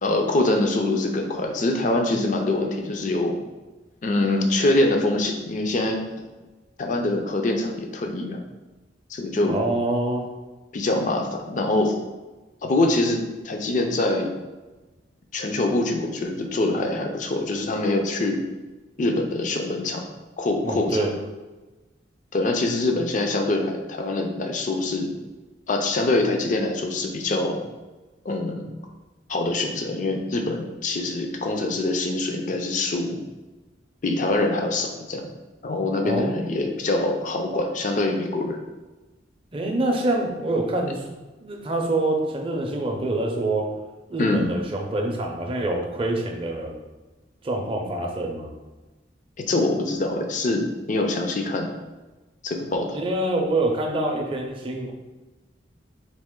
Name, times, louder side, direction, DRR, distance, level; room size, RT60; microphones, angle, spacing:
voice 1, 0.0-3.4 4.0-6.0 6.8-8.4 9.1-9.6 10.7-12.0 12.6-13.2 13.4-14.3 15.3-18.4 19.0-20.0 20.4-21.0 22.3-25.1 25.7-27.6 28.2-28.7 29.3-33.2 34.0-35.2 35.6-38.6 44.2-44.5 49.4-51.7 52.4-53.0, left 2 dB, 40° left, 3 dB, 0.4 m, -24 dB
voice 2, 9.5-10.2 20.6-21.1 36.0-36.3 39.5-41.1 41.4-43.7 44.1-46.7 47.4-48.5 52.9-54.9, right 2 dB, 30° right, 1 dB, 0.5 m, -25 dB
4.1 x 2.9 x 3.6 m, 1.2 s
head